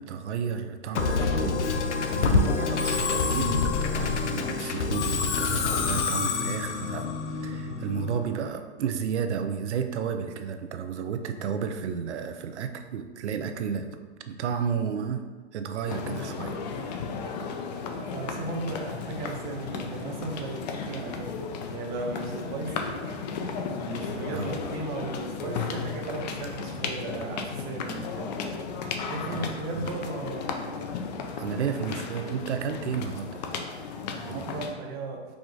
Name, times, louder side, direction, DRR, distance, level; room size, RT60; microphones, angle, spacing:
voice 1, 0.0-1.7 2.1-14.0 14.3-15.3 15.5-16.6 24.3-24.6 29.2-29.9 31.4-33.4 34.2-34.5, right 7 dB, 80° right, 7 dB, 0.6 m, -32 dB
Musical instrument, 0.9-8.3, left 4 dB, 85° left, 0.6 m, -27 dB
sound 1, 15.9-34.7, left 5 dB, 40° left, 0.4 m, -35 dB
voice 2, 17.9-21.3 21.7-23.3 23.7-28.4 29.0-30.5 34.1-35.3, right 3 dB, 25° right, 1 dB, 0.4 m, -36 dB
4.8 x 2.5 x 3.7 m, 1.4 s
hypercardioid pair, 135°, 34 cm